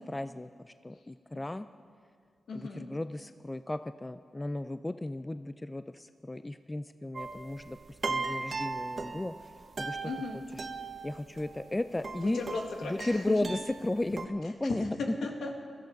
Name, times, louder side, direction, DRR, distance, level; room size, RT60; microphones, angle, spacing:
voice 1, 0.0-1.7 2.5-9.3 9.8-10.1 11.0-12.4 12.8-15.0, left 2 dB, 20° left, 11 dB, 0.4 m, -35 dB
voice 2, 2.5-2.9 10.0-10.4 12.2-13.4 14.7-15.6, left 3 dB, 90° left, 2 dB, 1.8 m, -36 dB
sound 1, 7.1-14.3, right 4 dB, 50° right, 1.1 m, -38 dB
17.5 x 13.0 x 5.2 m, 2.1 s
cardioid pair, 65°, 0 cm